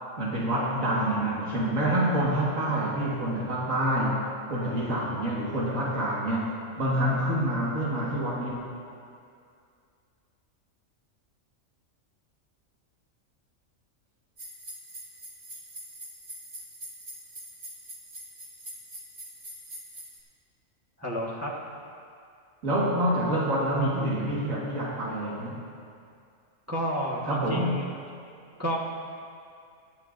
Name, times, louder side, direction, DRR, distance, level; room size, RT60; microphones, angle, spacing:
voice 1, 0.2-8.6 22.6-25.6 27.2-27.8, right 1 dB, 75° right, -5 dB, 2.1 m, -27 dB
sound 1, 14.4-20.2, right 1 dB, 40° right, 1.5 m, -44 dB
voice 2, 21.0-21.5 26.7-27.8 28.6-28.8, equal, 10° right, -5 dB, 1.2 m, -30 dB
17.0 x 11.5 x 2.6 m, 2.4 s
omnidirectional pair, 1.4 m